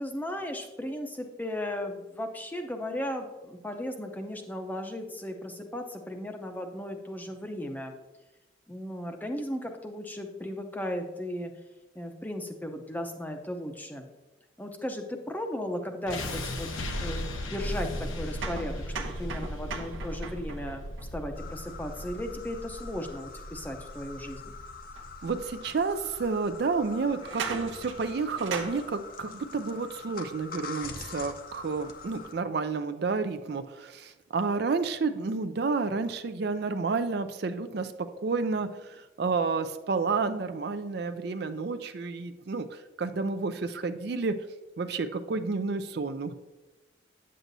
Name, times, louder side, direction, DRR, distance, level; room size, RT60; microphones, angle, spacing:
voice 1, 0.0-7.9 8.7-11.5 12.0-14.1 14.6-16.7 17.0-24.5, left 1 dB, 10° left, 4 dB, 0.6 m, -36 dB
sound 1, 16.1-28.1, left 1 dB, 90° left, 1.0 m, -38 dB
sound 2, 18.4-22.2 25.0-25.1 25.9-26.0 27.1-28.8, right 4 dB, 75° right, 0.9 m, -39 dB
sound 3, 21.3-32.3, left 5 dB, 45° left, 0.7 m, -45 dB
voice 2, 25.2-44.4 44.8-46.3, right 4 dB, 55° right, 9 dB, 0.4 m, -30 dB
9.0 x 7.5 x 2.7 m, 1.1 s
head